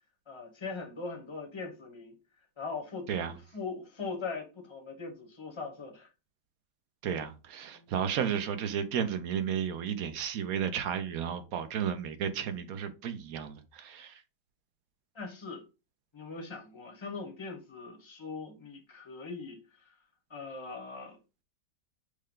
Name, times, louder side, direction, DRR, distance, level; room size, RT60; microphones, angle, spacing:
voice 1, 0.3-2.2 2.6-3.1 3.5-6.1 7.7-7.8 15.1-15.6 16.1-20.0 20.3-21.2, left 4 dB, 25° left, 0.8 m, -40 dB
voice 2, 7.0-14.2, right 8 dB, 65° right, 1.0 m, -33 dB
6.4 x 2.2 x 3.7 m
omnidirectional pair, 1.8 m